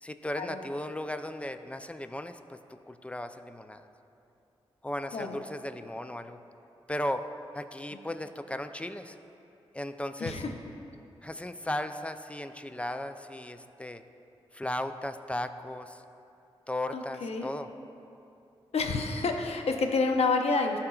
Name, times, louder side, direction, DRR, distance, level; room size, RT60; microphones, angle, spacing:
voice 1, 0.0-3.9 4.8-6.4 6.9-7.3 7.5-9.2 9.7-10.4 11.2-14.0 14.5-16.0 16.7-17.7, left 1 dB, 10° left, 9 dB, 0.4 m, -36 dB
voice 2, 16.9-17.5 18.7-20.8, left 4 dB, 70° left, 4 dB, 0.6 m, -28 dB
13.0 x 4.4 x 2.4 m, 2.8 s
supercardioid pair, 40°, 11 cm